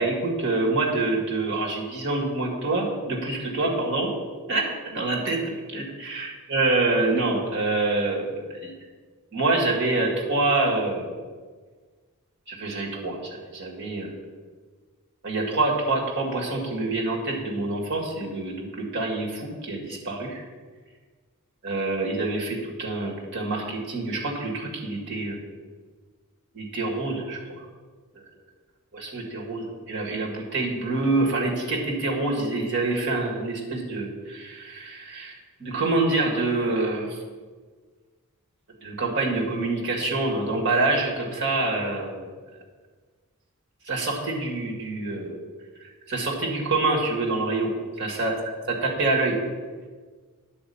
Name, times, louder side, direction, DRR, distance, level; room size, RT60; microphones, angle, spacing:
voice 1, 0.0-4.1 4.5-5.4 5.7-8.7 9.3-11.1 12.5-14.1 15.2-20.4 21.6-25.4 26.5-27.6 28.9-37.2 38.8-42.2 43.9-45.4 46.1-47.7 48.0-48.3 48.7-49.4, right 2 dB, 55° right, -1 dB, 2.0 m, -26 dB
9.8 x 4.3 x 7.0 m, 1.5 s
head